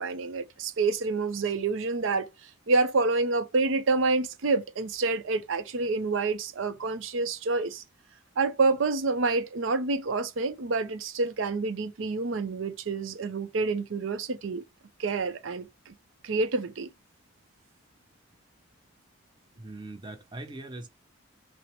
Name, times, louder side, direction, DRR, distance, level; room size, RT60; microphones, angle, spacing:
voice 1, 0.0-7.8 8.4-14.6 15.0-15.9 16.2-16.9, right 3 dB, 75° right, 0.5 m, -28 dB
voice 2, 19.5-20.9, right 2 dB, 25° right, 0.6 m, -41 dB
5.9 x 2.0 x 3.0 m
head